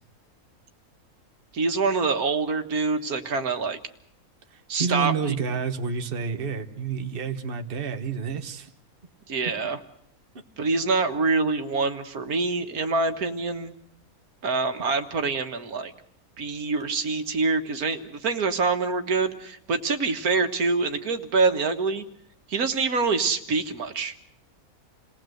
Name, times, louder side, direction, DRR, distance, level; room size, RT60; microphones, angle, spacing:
voice 1, 1.5-3.8 4.7-5.3 9.3-9.8 10.6-13.7 14.4-15.9 16.4-22.1 22.5-24.1, right 4 dB, 85° right, 7 dB, 1.9 m, -25 dB
voice 2, 4.5-8.7, right 5 dB, 40° right, 7 dB, 1.4 m, -29 dB
28.5 x 19.0 x 7.8 m, 0.68 s
omnidirectional pair, 1.5 m